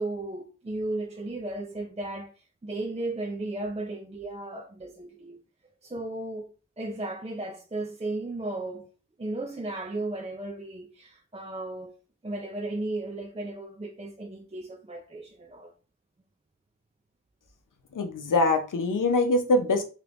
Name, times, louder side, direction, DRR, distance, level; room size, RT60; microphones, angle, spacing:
voice 1, 0.0-2.3 2.6-5.4 5.8-6.5 6.8-8.9 9.2-11.9 12.2-15.7, right 2 dB, 20° right, 0.5 m, -35 dB
voice 2, 17.9-19.8, left 2 dB, 80° left, 0.7 m, -23 dB
3.0 x 2.5 x 3.4 m
wide cardioid pair, 55°, 31 cm